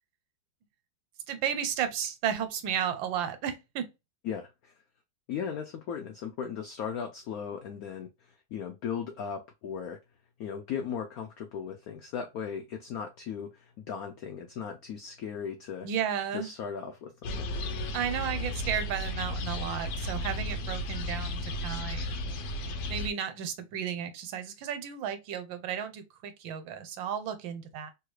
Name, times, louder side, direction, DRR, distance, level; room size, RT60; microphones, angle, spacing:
voice 1, 1.3-3.9 15.8-16.5 17.9-22.1 22.9-27.9, right 8 dB, 80° right, 1.3 m, -33 dB
voice 2, 4.2-4.7 5.3-10.0 10.4-15.9 16.3-17.5, left 7 dB, 85° left, 0.8 m, -37 dB
sound 1, 17.2-23.1, left 1 dB, 70° left, 1.1 m, -34 dB
3.2 x 2.3 x 3.1 m
omnidirectional pair, 2.1 m